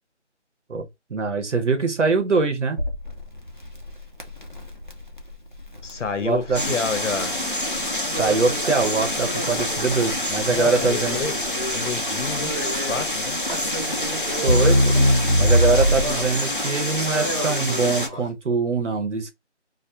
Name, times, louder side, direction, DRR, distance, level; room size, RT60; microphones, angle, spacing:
voice 1, 1.1-2.8 6.2-6.8 8.0-11.2 14.4-15.0 15.4-19.3, right 4 dB, 80° right, 0.7 m, -23 dB
Crackle, 2.8-16.4, equal, 45° right, 0.5 m, -24 dB
voice 2, 5.8-7.3 10.5-11.3 11.7-13.4, left 5 dB, 90° left, 0.7 m, -29 dB
sound 1, 6.5-18.1, left 1 dB, 50° left, 0.4 m, -27 dB
sound 2, 8.1-18.3, right 1 dB, 30° left, 1.1 m, -35 dB
2.8 x 2.0 x 2.2 m
figure-of-eight pair, 180°, 35 cm